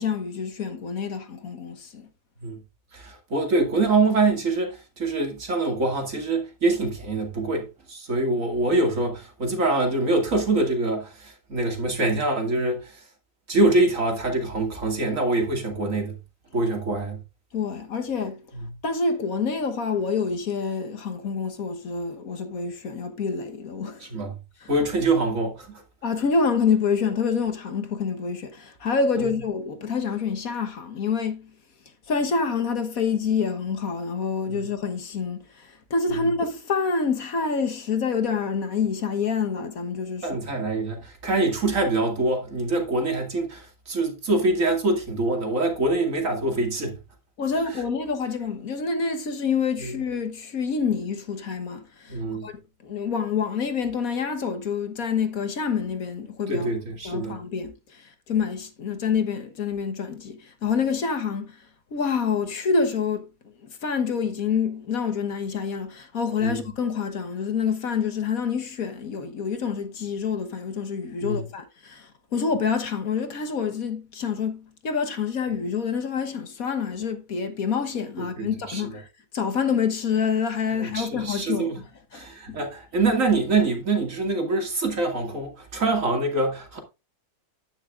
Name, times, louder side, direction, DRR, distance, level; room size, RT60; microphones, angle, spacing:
voice 1, 0.0-2.1 17.5-18.4 18.8-24.1 24.6-24.7 26.0-31.5 32.1-40.3 47.4-52.5 52.8-56.7 57.0-61.7 61.9-63.3 63.8-79.1 79.3-82.6, left 5 dB, 60° left, 1.6 m, -27 dB
voice 2, 2.9-13.0 13.5-16.2 16.5-17.2 24.0-24.3 24.7-25.8 29.2-29.3 34.5-34.6 36.1-36.2 40.2-47.0 49.8-49.9 52.1-52.5 56.5-57.4 66.4-66.6 71.2-71.4 78.2-78.8 80.7-81.8 82.1-86.8, right 2 dB, 55° right, 2.7 m, -25 dB
10.5 x 9.9 x 2.5 m
omnidirectional pair, 1.7 m